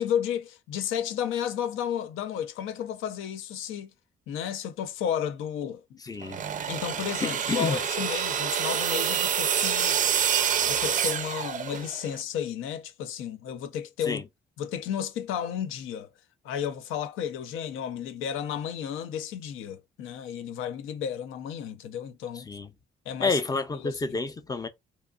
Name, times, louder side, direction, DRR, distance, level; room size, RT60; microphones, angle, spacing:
voice 1, 0.0-3.9 4.3-6.0 6.7-10.0 10.6-14.2 14.6-16.1 16.4-22.5 23.1-23.4 23.7-24.0, left 9 dB, 85° left, 0.5 m, -32 dB
voice 2, 6.0-6.4 7.2-7.8 14.1-14.2 22.4-22.7 23.2-24.7, left 4 dB, 20° left, 0.4 m, -29 dB
sound 1, 6.2-12.1, right 8 dB, 40° right, 0.4 m, -27 dB
2.8 x 2.3 x 2.3 m
cardioid pair, 90°, 20 cm